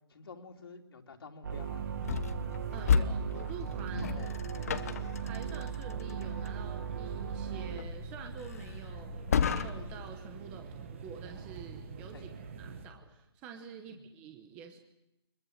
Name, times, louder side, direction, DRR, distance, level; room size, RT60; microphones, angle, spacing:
voice 1, 0.1-1.8 4.0-4.9 12.1-12.2 13.8-14.0, left 4 dB, 55° left, 4 dB, 3.1 m, -50 dB
sound 1, 1.4-7.8, right 8 dB, 40° right, 1.7 m, -38 dB
sound 2, 1.5-12.9, right 5 dB, 25° right, 1.6 m, -45 dB
sound 3, 2.0-10.1, left 6 dB, 30° left, 1.0 m, -34 dB
voice 2, 2.7-4.2 5.2-12.3 12.5-14.8, right 6 dB, 10° right, 5 dB, 0.9 m, -48 dB
27.5 x 22.0 x 6.5 m, 0.87 s
hypercardioid pair, 175°, 15 cm